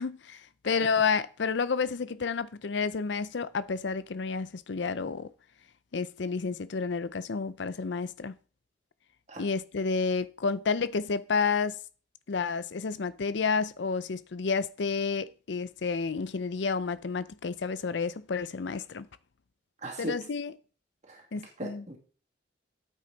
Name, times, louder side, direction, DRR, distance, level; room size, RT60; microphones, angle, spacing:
voice 1, 0.0-5.3 5.9-8.3 9.4-11.8 12.3-19.1 20.0-20.5 21.3-21.8, left 5 dB, 70° left, 0.5 m, -30 dB
voice 2, 19.8-20.1 21.1-21.2 21.6-22.0, right 1 dB, 35° right, 2.2 m, -38 dB
9.6 x 8.5 x 4.0 m
head